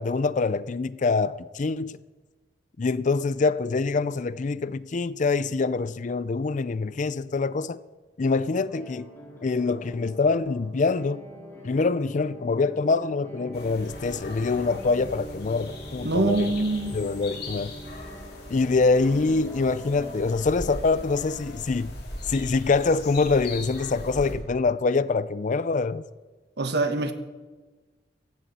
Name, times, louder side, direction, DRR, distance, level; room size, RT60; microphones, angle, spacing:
voice 1, 0.0-2.0 2.8-7.8 8.2-9.1 9.4-11.2 11.6-16.5 16.9-17.7 18.5-21.9 22.3-26.1, left 4 dB, 45° left, 0.5 m, -25 dB
sound 1, 8.5-20.1, equal, 15° left, 4.3 m, -43 dB
sound 2, 13.5-24.3, left 1 dB, 65° left, 4.1 m, -40 dB
voice 2, 16.0-17.0 26.6-27.1, right 2 dB, 65° right, 1.4 m, -24 dB
17.0 x 15.0 x 4.3 m
head